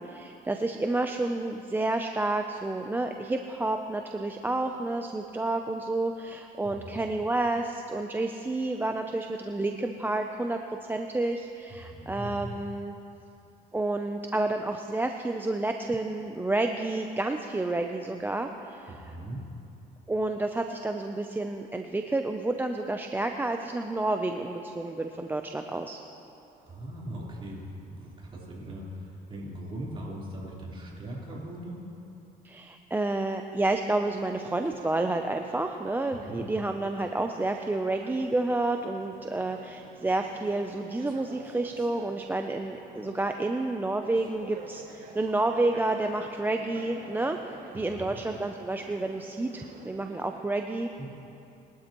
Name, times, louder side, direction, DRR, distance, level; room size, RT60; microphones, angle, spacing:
voice 1, 0.0-10.6 10.9-13.0 13.7-19.1 20.1-26.0 32.4-50.9, right 2 dB, 10° right, 5 dB, 0.5 m, -30 dB
voice 2, 6.6-7.0 11.7-12.5 18.9-19.4 26.7-31.8 36.3-36.4 47.7-48.1 51.0-51.1, right 1 dB, 30° right, -5 dB, 3.7 m, -40 dB
sound 1, 34.1-50.4, right 4 dB, 60° right, 2.0 m, -50 dB
21.5 x 12.0 x 3.0 m, 2.9 s
cardioid pair, 110°, 17 cm